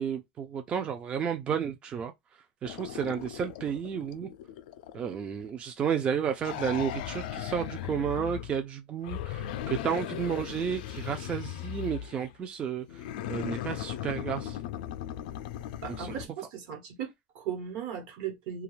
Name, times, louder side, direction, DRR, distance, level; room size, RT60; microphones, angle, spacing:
voice 1, 0.0-2.1 2.6-4.3 4.9-14.6 15.9-16.2, right 7 dB, 25° right, 0.3 m, -32 dB
sound 1, 2.6-5.5 6.4-8.6 9.0-12.3 12.9-16.3, left 11 dB, 90° left, 0.3 m, -38 dB
voice 2, 15.8-18.6, right 8 dB, 65° right, 1.1 m, -37 dB
2.3 x 2.3 x 3.0 m
supercardioid pair, 155°, 5 cm